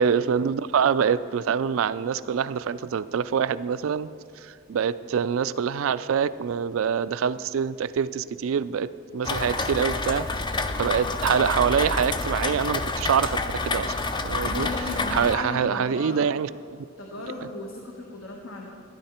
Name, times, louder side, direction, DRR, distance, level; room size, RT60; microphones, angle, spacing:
voice 1, 0.0-4.1 4.4-10.3 10.5-13.4 13.6-14.0 14.2-14.7 15.1-16.5, right 7 dB, 75° right, 14 dB, 0.4 m, -25 dB
Rain, 9.2-15.3, left 3 dB, 20° left, 0.4 m, -28 dB
voice 2, 10.7-11.0 14.4-16.3 17.0-18.7, left 2 dB, 70° left, 0 dB, 1.2 m, -35 dB
13.5 x 10.5 x 4.3 m, 2.2 s
head